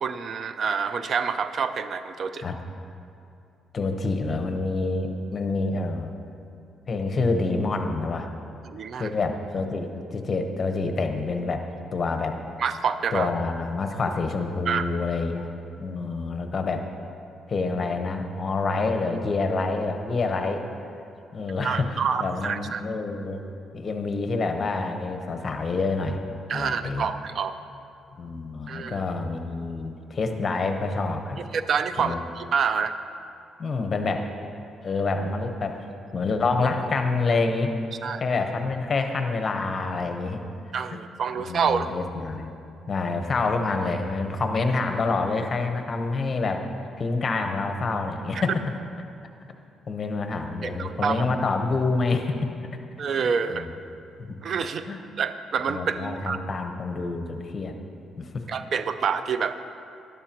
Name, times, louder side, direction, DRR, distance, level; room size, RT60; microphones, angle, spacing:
voice 1, 0.0-2.4 8.7-9.1 12.6-13.3 14.7-14.9 21.6-22.8 26.5-27.6 28.7-29.0 31.5-33.0 38.0-38.2 40.7-41.9 50.6-51.2 53.0-53.7 54.4-54.9 55.2-56.4 58.5-59.6, right 6 dB, 55° right, 11 dB, 0.5 m, -27 dB
voice 2, 3.7-6.1 6.9-8.3 9.0-11.6 11.9-12.3 13.1-15.5 15.8-16.8 17.5-20.6 21.3-23.4 23.7-26.2 26.5-27.1 28.2-31.4 32.0-32.2 33.6-34.3 34.8-35.8 36.1-37.7 38.2-40.4 40.9-41.0 41.4-42.5 42.9-46.7 47.0-48.6 49.9-52.5 53.5-53.7 54.2-54.4 54.9-55.0 55.7-57.7 58.2-58.3, left 3 dB, 40° left, 5 dB, 0.9 m, -27 dB
12.5 x 11.5 x 2.9 m, 2.6 s
cardioid pair, 90°, 0 cm